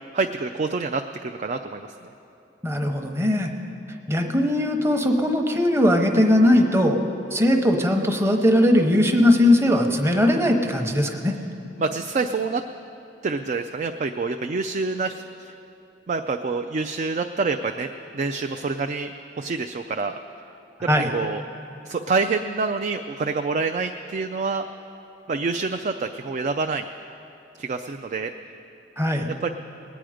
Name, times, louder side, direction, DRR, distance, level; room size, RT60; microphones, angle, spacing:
voice 1, 0.1-2.1 11.8-12.6 13.2-15.5 16.1-17.9 18.1-20.2 21.0-21.4 21.8-24.6 25.3-26.9 27.6-28.3 29.4-29.5, right 4 dB, 40° right, 6 dB, 0.4 m, -27 dB
voice 2, 2.6-3.5 4.1-7.0 7.3-11.3 20.9-21.1 29.0-29.3, left 1 dB, 15° right, 3 dB, 0.9 m, -19 dB
20.5 x 9.1 x 5.0 m, 2.8 s
head